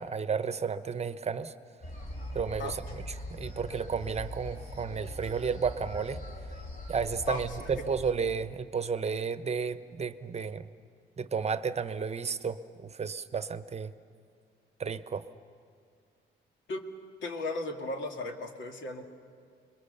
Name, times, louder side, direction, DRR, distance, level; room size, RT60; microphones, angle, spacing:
voice 1, 0.0-1.5 2.3-3.0 3.3-6.2 6.9-10.7 11.2-13.9 14.8-15.3, right 6 dB, 35° right, 12 dB, 0.9 m, -32 dB
sound 1, 1.8-8.1, left 1 dB, 45° left, 4.1 m, -41 dB
voice 2, 7.3-7.7 16.7-16.8 17.2-19.0, left 2 dB, 70° left, 3 dB, 2.3 m, -36 dB
28.0 x 21.5 x 6.8 m, 2.3 s
cardioid pair, 90°, 20 cm